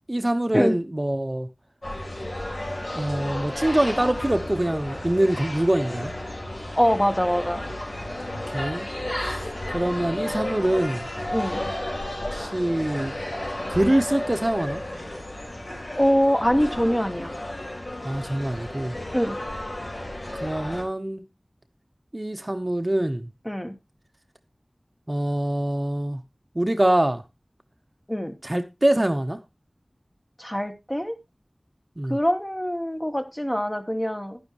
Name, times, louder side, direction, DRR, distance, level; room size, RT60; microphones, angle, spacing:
voice 1, 0.1-1.5 2.9-6.1 8.5-8.9 9.7-11.1 12.3-13.1 13.7-14.8 18.0-18.9 20.4-21.2 22.1-23.3 25.1-26.2 26.5-27.2 28.4-29.4 32.0-32.2, right 1 dB, 35° right, 0.9 m, -24 dB
sound 1, 1.8-20.8, left 1 dB, 70° left, 4.1 m, -33 dB
voice 2, 6.8-7.6 11.3-11.6 16.0-17.3 19.1-19.4 23.4-23.7 28.1-28.3 30.4-31.2 32.1-34.4, equal, 15° left, 1.2 m, -23 dB
10.5 x 9.8 x 2.9 m
wide cardioid pair, 50°, 0 cm